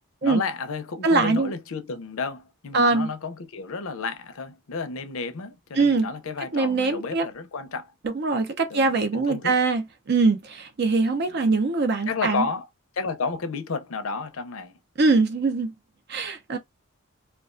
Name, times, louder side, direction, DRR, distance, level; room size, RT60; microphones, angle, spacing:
voice 1, 0.2-7.9 8.7-9.5 11.2-11.4 12.1-12.7 12.9-14.8, left 4 dB, 80° left, 0.6 m, -32 dB
voice 2, 1.0-1.5 2.7-3.1 5.8-6.1 6.5-7.3 8.0-12.5 15.0-15.7 16.1-16.6, right 3 dB, 50° right, 0.5 m, -22 dB
2.3 x 2.3 x 2.4 m
head